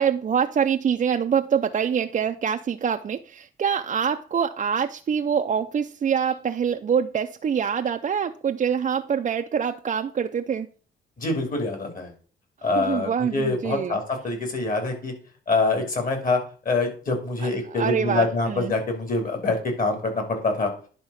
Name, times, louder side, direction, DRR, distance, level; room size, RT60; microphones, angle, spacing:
voice 1, 0.0-10.7 12.8-14.0 17.6-18.7, right 7 dB, 40° right, 5 dB, 0.5 m, -25 dB
voice 2, 11.2-12.1 12.6-15.1 15.5-16.4 16.6-20.7, left 3 dB, 45° left, 4 dB, 3.2 m, -25 dB
10.5 x 3.6 x 5.7 m, 0.41 s
cardioid pair, 90°, 20 cm